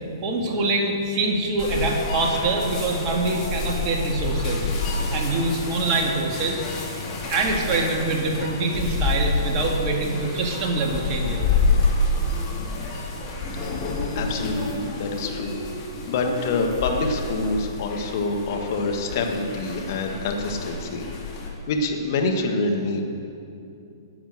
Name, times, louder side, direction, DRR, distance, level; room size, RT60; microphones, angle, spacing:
voice 1, 0.2-4.7 5.1-6.6 7.3-11.5 13.4-13.6, right 2 dB, 35° right, 0 dB, 2.0 m, -24 dB
sound 1, 1.6-21.5, left 3 dB, 35° left, 2.3 m, -28 dB
voice 2, 13.6-15.5 16.1-21.0 21.7-23.0, left 3 dB, 50° left, 3 dB, 1.5 m, -26 dB
11.0 x 7.1 x 7.8 m, 2.6 s
figure-of-eight pair, 120°, 2 cm